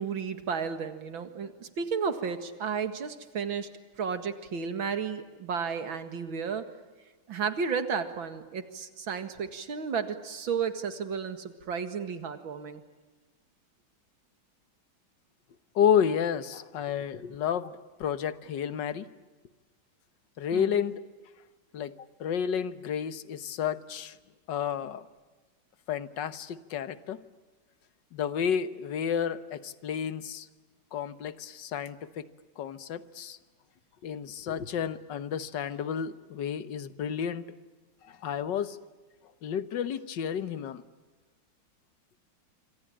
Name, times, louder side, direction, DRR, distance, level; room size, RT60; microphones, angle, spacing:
voice 1, 0.0-3.7 4.0-6.7 7.3-12.8 20.5-20.8, right 6 dB, 70° right, 9 dB, 2.7 m, -33 dB
voice 2, 15.8-17.7 18.0-19.1 20.4-21.0 21.7-24.2 24.5-25.0 25.9-27.2 28.1-30.5 30.9-32.3 32.6-33.4 34.0-37.5 38.0-38.8 39.4-40.8, left 8 dB, 60° left, 13 dB, 1.8 m, -31 dB
26.0 x 25.5 x 8.8 m, 1.3 s
omnidirectional pair, 2.3 m